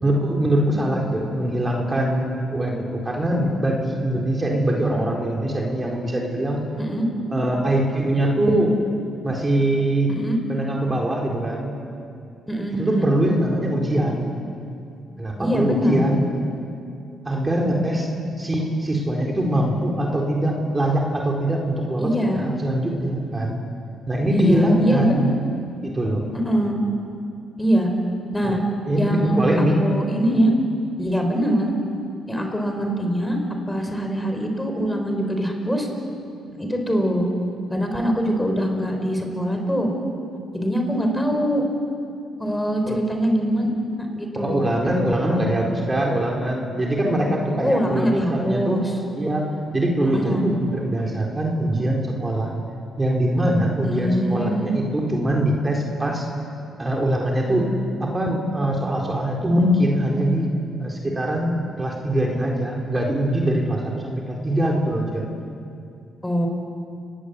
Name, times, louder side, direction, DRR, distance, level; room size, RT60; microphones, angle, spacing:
voice 1, 0.0-6.6 7.3-8.8 9.2-10.1 10.5-11.7 12.7-14.3 15.2-16.2 17.2-18.1 18.4-23.6 24.1-25.2 25.8-26.2 28.4-28.5 28.8-29.8 42.9-43.0 44.3-48.9 49.2-52.5 53.0-56.2 56.8-57.7 58.0-60.5 60.8-65.2, right 1 dB, 20° right, -1 dB, 4.3 m, -22 dB
voice 2, 12.5-13.1 15.4-16.0 22.0-22.4 24.3-25.3 26.3-26.8 27.6-27.9 28.3-28.6 29.0-30.5 31.0-31.7 32.3-33.4 33.7-35.9 36.5-37.3 37.7-39.9 40.5-41.6 42.4-43.7 44.0-44.7 47.6-48.9 50.0-50.5 53.8-54.7 66.2-66.5, equal, 10° left, 3 dB, 5.2 m, -23 dB
30.0 x 20.0 x 8.4 m, 2.5 s
cardioid pair, 90°, 0 cm